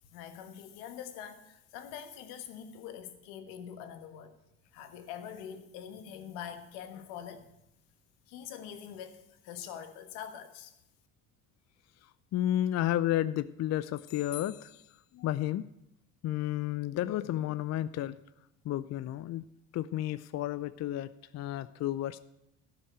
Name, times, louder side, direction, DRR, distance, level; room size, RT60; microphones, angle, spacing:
voice 1, 0.1-4.4 4.7-7.5 8.3-10.7, left 9 dB, 80° left, 1.4 m, -44 dB
voice 2, 12.0-14.8 15.1-15.7 16.2-18.2 18.6-19.4 19.7-22.2, left 13 dB, 45° left, 0.5 m, -32 dB
12.0 x 5.9 x 8.8 m
supercardioid pair, 70°, 38 cm